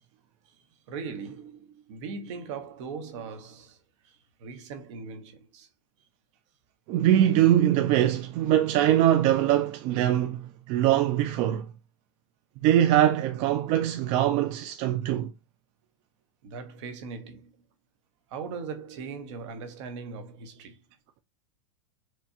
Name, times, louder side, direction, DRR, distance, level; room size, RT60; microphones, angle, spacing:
voice 1, 0.9-5.7 16.4-17.5 18.3-20.8, right 5 dB, 60° right, 1.0 m, -39 dB
voice 2, 6.9-11.7 12.6-15.3, right 12 dB, 40° right, 0.4 m, -22 dB
4.5 x 2.2 x 2.7 m
supercardioid pair, 135°, 17 cm